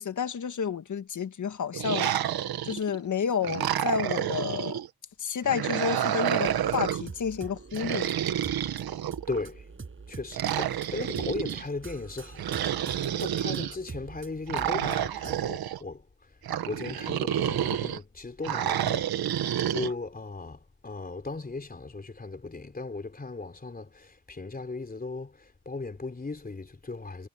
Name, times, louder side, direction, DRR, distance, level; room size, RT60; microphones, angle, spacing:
voice 1, 0.0-2.1 2.6-4.8 5.2-8.1, left 7 dB, 55° left, 1.7 m, -30 dB
sound 1, 1.7-3.0 3.4-4.9 5.4-7.1 7.7-9.4 10.3-11.6 12.4-13.7 14.5-15.8 16.4-18.0 18.4-19.9, right 10 dB, 85° right, 1.7 m, -29 dB
sound 2, 6.5-15.5, right 4 dB, 35° right, 7.3 m, -45 dB
voice 2, 9.3-9.7 10.1-16.1 16.7-19.1 19.4-27.3, left 3 dB, 25° left, 4.0 m, -37 dB
cardioid pair, 100°, 36 cm